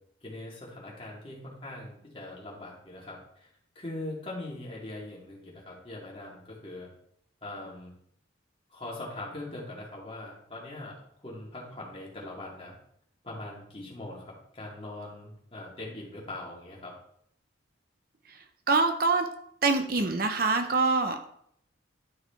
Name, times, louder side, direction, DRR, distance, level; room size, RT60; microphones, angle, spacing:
voice 1, 0.2-3.5 3.7-6.9 7.4-7.9 8.7-11.0 11.2-12.7 13.2-16.9, left 2 dB, 30° left, -4 dB, 2.6 m, -41 dB
voice 2, 18.3-19.3 19.6-21.3, right 3 dB, 50° right, 6 dB, 0.7 m, -25 dB
12.0 x 4.9 x 4.6 m, 0.69 s
head